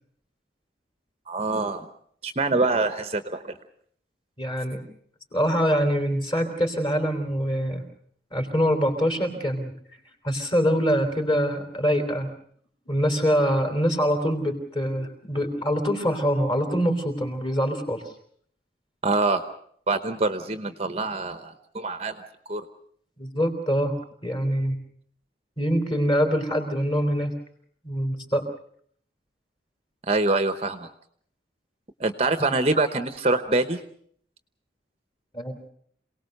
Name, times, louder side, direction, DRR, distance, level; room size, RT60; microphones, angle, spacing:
voice 1, 1.3-1.9 2.2-3.5 19.0-19.4 19.9-22.1 22.5-22.6 30.1-30.9 32.0-33.8, right 3 dB, 35° right, 10 dB, 1.0 m, -25 dB
voice 2, 4.4-4.8 5.3-7.8 8.3-9.7 10.2-12.3 12.9-18.0 23.2-24.8 25.6-27.3 27.8-28.5 35.3-35.7, equal, 30° left, 5 dB, 3.6 m, -24 dB
27.5 x 18.5 x 6.7 m, 0.62 s
head